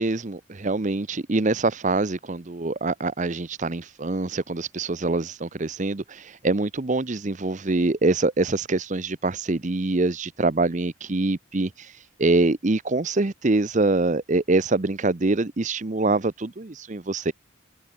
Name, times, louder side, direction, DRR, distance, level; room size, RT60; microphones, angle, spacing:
voice 1, 0.0-17.3, right 2 dB, 35° right, 0.7 m, -24 dB
head